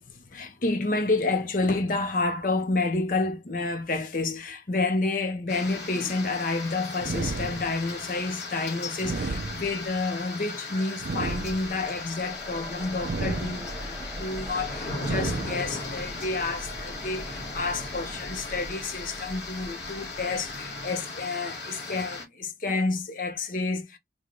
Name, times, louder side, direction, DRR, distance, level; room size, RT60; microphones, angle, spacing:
voice 1, 0.1-24.0, left 3 dB, 50° left, 0.7 m, -29 dB
sound 1, 5.5-22.2, left 3 dB, 80° left, 1.6 m, -37 dB
sound 2, 7.0-8.1 9.0-10.1 11.0-12.1 13.0-14.0 15.0-16.0, right 3 dB, 65° right, 0.5 m, -33 dB
sound 3, 11.8-21.0, right 1 dB, ahead, 0.8 m, -43 dB
3.8 x 2.2 x 3.1 m
head